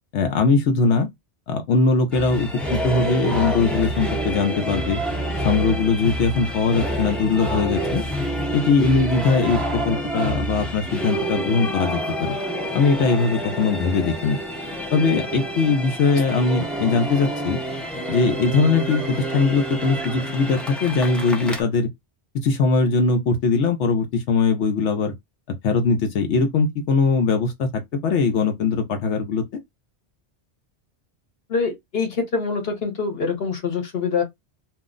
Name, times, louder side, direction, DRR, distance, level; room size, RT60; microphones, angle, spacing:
voice 1, 0.1-1.1 1.5-5.0 5.4-8.0 8.5-12.4 12.7-14.4 14.9-17.6 18.1-21.9 22.3-25.1 25.6-29.4, left 4 dB, 80° left, 0.9 m, -21 dB
sound 1, 2.1-21.6, right 1 dB, ahead, 0.4 m, -28 dB
voice 2, 16.1-16.5 31.5-34.2, left 5 dB, 60° left, 1.1 m, -25 dB
2.5 x 2.1 x 3.6 m
omnidirectional pair, 1.2 m